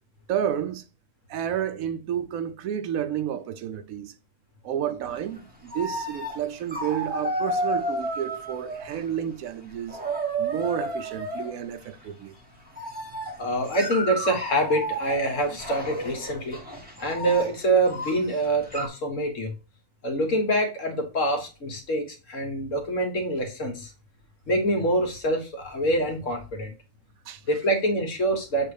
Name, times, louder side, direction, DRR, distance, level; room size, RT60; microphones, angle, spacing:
voice 1, 0.3-0.8 1.3-4.1 4.6-10.0 10.4-12.3 27.3-27.4, right 9 dB, 75° right, 1.0 m, -30 dB
sound 1, 5.4-5.5 5.7-6.4 6.7-9.2 9.7-11.5 12.7-18.9, right 1 dB, 5° right, 1.1 m, -32 dB
voice 2, 13.4-16.6 17.0-19.5 20.0-23.9 24.5-26.7 27.5-28.7, right 1 dB, 60° left, 1.7 m, -25 dB
7.5 x 2.6 x 4.8 m
omnidirectional pair, 1.5 m